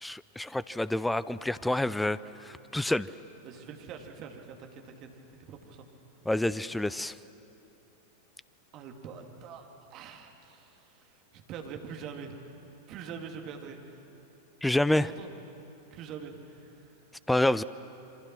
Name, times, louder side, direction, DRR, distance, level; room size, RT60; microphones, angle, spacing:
voice 1, 0.0-3.1 6.3-7.2 14.6-15.1 17.3-17.6, left 1 dB, 5° left, 17 dB, 0.5 m, -28 dB
voice 2, 3.4-5.9 8.7-12.4 12.9-14.0 14.9-15.3 15.9-16.9, right 6 dB, 35° right, 3 dB, 2.4 m, -44 dB
27.5 x 24.5 x 6.2 m, 3.0 s
figure-of-eight pair, 90°, 0 cm